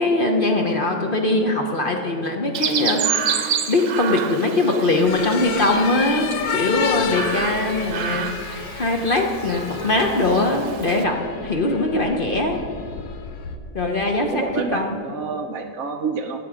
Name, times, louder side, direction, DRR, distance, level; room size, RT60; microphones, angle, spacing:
voice 1, 0.0-3.0 3.3-12.6 13.7-14.3 14.7-14.9, left 2 dB, 40° left, 3 dB, 0.7 m, -21 dB
Chirp tweet, 2.5-11.0, right 8 dB, 85° right, 1.6 m, -29 dB
sound 1, 5.1-13.6, left 7 dB, 90° left, 1.6 m, -31 dB
voice 2, 14.3-16.5, right 4 dB, 60° right, 3 dB, 0.7 m, -28 dB
18.0 x 7.8 x 4.9 m, 2.6 s
omnidirectional pair, 2.0 m